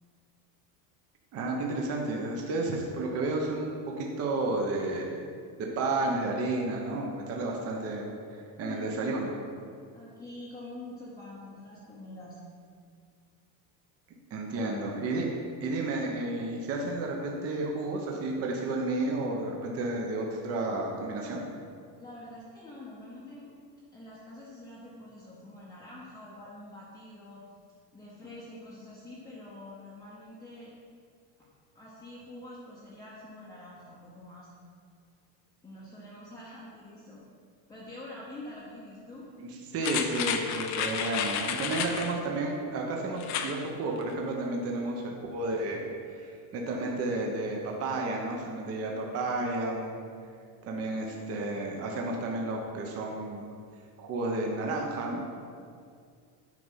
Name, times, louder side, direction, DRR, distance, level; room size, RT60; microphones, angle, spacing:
voice 1, 1.3-5.2 5.6-9.4 14.3-15.3 15.6-21.4 39.4-50.0 50.6-53.5 54.0-55.2, right 2 dB, 30° right, 0 dB, 0.9 m, -32 dB
voice 2, 8.6-9.1 9.9-12.4 14.6-14.8 22.0-23.5 23.9-27.4 27.9-30.7 31.4-31.5 31.7-34.5 35.6-37.2 37.7-39.2, left 1 dB, 10° left, -7 dB, 0.8 m, -46 dB
sound 1, 39.8-42.2 43.2-43.6 44.0-44.1, left 8 dB, 40° left, 0.5 m, -31 dB
9.3 x 5.4 x 5.5 m, 2.2 s
cardioid pair, 175°, 45 cm